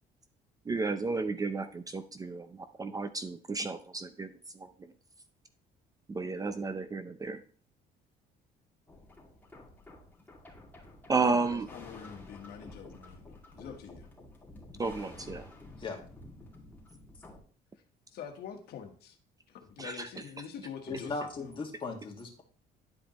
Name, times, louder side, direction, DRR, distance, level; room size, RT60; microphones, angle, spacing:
voice 1, 0.7-4.3 4.6-4.7 6.1-7.4 11.1-11.7 14.8-15.4 19.8-20.1, right 4 dB, 20° right, 0.5 m, -32 dB
sound 1, 8.9-17.4, left 2 dB, 10° left, 2.3 m, -51 dB
voice 2, 11.2-14.1 18.1-19.2 19.5-21.3, left 8 dB, 70° left, 1.3 m, -45 dB
voice 3, 20.9-22.4, left 3 dB, 30° left, 2.0 m, -37 dB
10.5 x 5.0 x 3.1 m
cardioid pair, 110°, 17 cm